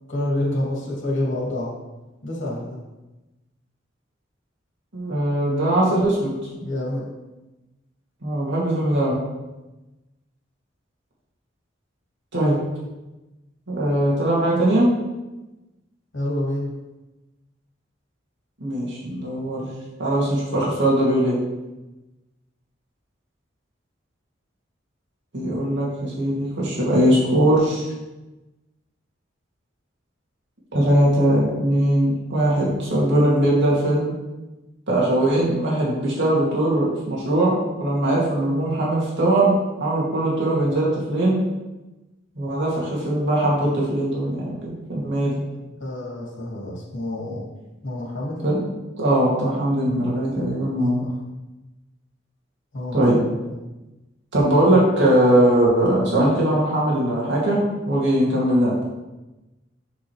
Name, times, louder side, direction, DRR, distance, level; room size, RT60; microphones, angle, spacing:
voice 1, 0.1-1.7 2.2-2.8 6.6-7.1 16.1-16.7 35.8-36.0 45.8-47.5 47.8-48.4 51.0-51.2 52.7-53.6, left 1 dB, 90° left, -4 dB, 2.5 m, -28 dB
voice 2, 4.9-6.3 8.2-9.2 12.3-12.6 13.7-14.9 18.6-19.7 20.0-21.4 25.3-27.9 30.7-34.1 34.9-41.4 42.4-44.6 44.9-45.4 48.4-48.7 49.0-51.1 52.9-53.2 54.3-59.0, right 1 dB, 65° right, -5 dB, 2.5 m, -20 dB
8.0 x 6.3 x 3.2 m, 1.1 s
head